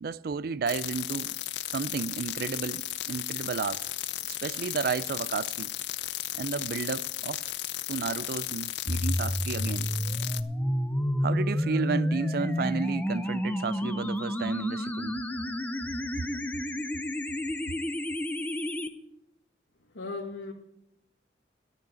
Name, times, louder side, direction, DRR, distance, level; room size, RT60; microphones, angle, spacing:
voice 1, 0.0-1.4 1.7-3.9 4.3-5.7 6.4-7.4 7.9-9.9 11.2-15.2 16.2-16.3, right 5 dB, 55° right, 0.4 m, -32 dB
sound 1, 0.7-10.4, left 14 dB, 65° left, 0.5 m, -35 dB
sound 2, 8.9-18.9, equal, 10° left, 0.6 m, -30 dB
voice 2, 19.8-20.5, left 3 dB, 85° left, 1.5 m, -37 dB
12.0 x 6.5 x 8.3 m
head